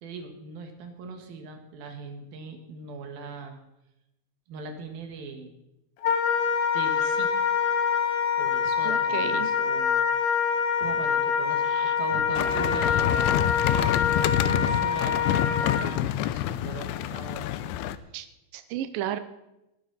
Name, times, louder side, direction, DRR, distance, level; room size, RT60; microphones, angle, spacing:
voice 1, 0.0-3.6 4.5-5.5 6.7-7.5 8.4-10.5 10.8-13.5 13.8-14.0 14.4-15.2 15.8-17.5, right 4 dB, 60° right, 5 dB, 3.2 m, -40 dB
Wind instrument woodwind instrument, 6.0-15.9, left 7 dB, 70° left, 2.4 m, -25 dB
voice 2, 8.8-9.5 11.6-12.0 18.1-18.3 18.5-19.2, right 11 dB, 90° right, 11 dB, 2.0 m, -33 dB
sound 1, 12.3-18.0, left 12 dB, 90° left, 2.2 m, -27 dB
19.0 x 12.0 x 4.1 m, 0.89 s
omnidirectional pair, 5.2 m